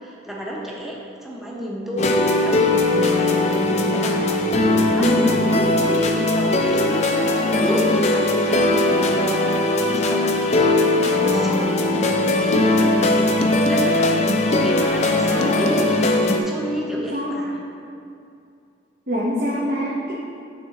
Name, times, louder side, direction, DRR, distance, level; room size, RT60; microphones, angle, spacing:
voice 1, 0.0-15.7 16.4-17.6, equal, ahead, -4 dB, 0.7 m, -30 dB
sound 1, 2.0-16.4, left 2 dB, 35° left, 0.4 m, -19 dB
voice 2, 17.1-17.4 19.1-20.1, equal, 50° right, -8 dB, 0.9 m, -23 dB
9.4 x 3.9 x 2.9 m, 2.5 s
head